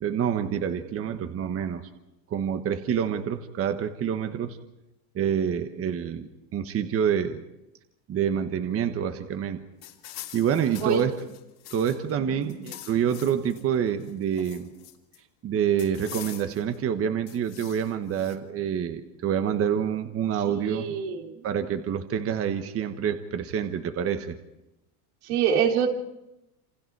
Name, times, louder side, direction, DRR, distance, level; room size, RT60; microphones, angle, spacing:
voice 1, 0.0-1.9 2.3-4.6 5.1-7.4 8.1-9.6 10.3-11.1 11.7-14.7 15.4-20.8 21.4-24.4, right 8 dB, 30° right, 8 dB, 1.3 m, -27 dB
tcr sound scape hcfr maelle lc emie donia, 9.8-12.1 12.4-13.6 14.0-15.2 15.8-16.8 17.3-18.4, left 13 dB, 50° left, 3.1 m, -44 dB
voice 2, 20.5-21.4 25.2-25.9, right 7 dB, 85° right, 2 dB, 3.7 m, -26 dB
28.0 x 27.5 x 4.8 m, 0.92 s
cardioid pair, 145°, 45 cm